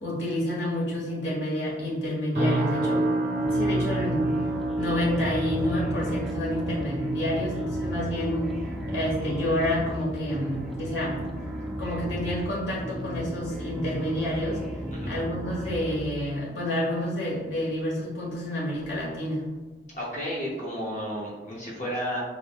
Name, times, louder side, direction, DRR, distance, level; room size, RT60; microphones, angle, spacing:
voice 1, 0.0-3.1 3.4-4.3 4.8-8.5 8.9-11.2 11.8-14.6 15.0-19.4, left 1 dB, 75° left, -6 dB, 1.4 m, -29 dB
sound 1, 2.3-17.6 17.9-18.3 18.8-19.0, right 2 dB, 55° right, 1.4 m, -32 dB
sound 2, 3.4-16.0, equal, ahead, 0.4 m, -36 dB
voice 2, 19.9-22.2, equal, 40° left, -4 dB, 0.7 m, -32 dB
4.9 x 2.6 x 2.4 m, 1.3 s
head